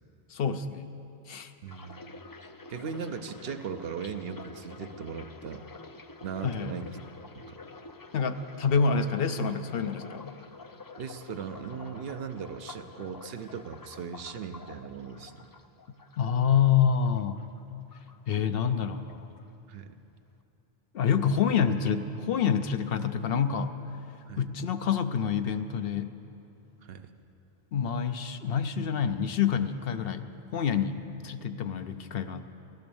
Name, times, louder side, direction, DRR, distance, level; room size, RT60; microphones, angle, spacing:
voice 1, 0.3-0.8 1.3-1.5 6.4-6.8 8.1-10.3 16.2-17.4 18.3-19.3 20.9-23.7 24.4-26.1 27.7-30.2 30.5-32.5, left 7 dB, 65° left, 9 dB, 0.8 m, -27 dB
voice 2, 1.6-2.0 2.4-5.7 6.2-7.0 7.3-7.6 11.0-15.5 19.7-19.9 24.3-24.4 26.8-27.1, right 6 dB, 70° right, 8 dB, 0.9 m, -38 dB
sound 1, 1.7-17.6 17.9-18.8 19.1-19.4, left 3 dB, 30° left, 0.4 m, -48 dB
15.5 x 11.5 x 7.0 m, 2.8 s
omnidirectional pair, 1.1 m